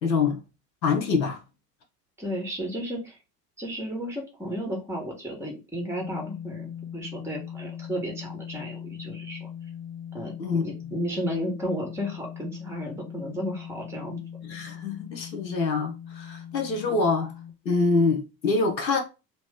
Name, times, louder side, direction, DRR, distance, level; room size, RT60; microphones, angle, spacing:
voice 1, 0.0-0.4 0.8-1.4 10.4-10.7 14.4-17.3 17.6-19.0, left 4 dB, 85° left, 0.9 m, -25 dB
voice 2, 2.2-3.2 3.6-9.5 10.1-14.2, equal, 5° right, 1.5 m, -33 dB
sound 1, 6.0-17.5, left 9 dB, 25° left, 0.7 m, -40 dB
3.0 x 2.8 x 3.6 m
figure-of-eight pair, 70°, 50 cm